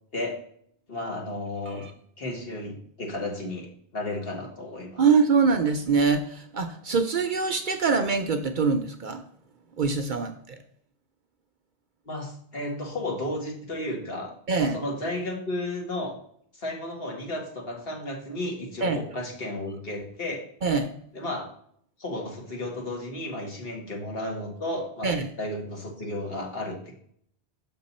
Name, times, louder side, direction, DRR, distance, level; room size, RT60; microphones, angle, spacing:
voice 1, 0.9-1.8 2.2-5.0 12.0-16.2 16.5-20.4 21.1-21.5 22.0-25.1 25.4-26.9, left 1 dB, 60° left, 0 dB, 1.7 m, -33 dB
voice 2, 5.0-9.2 9.8-10.6 14.5-14.8 18.8-19.1 20.6-20.9 25.0-25.3, right 5 dB, 55° right, 8 dB, 0.6 m, -24 dB
6.2 x 5.9 x 4.1 m, 0.64 s
omnidirectional pair, 1.1 m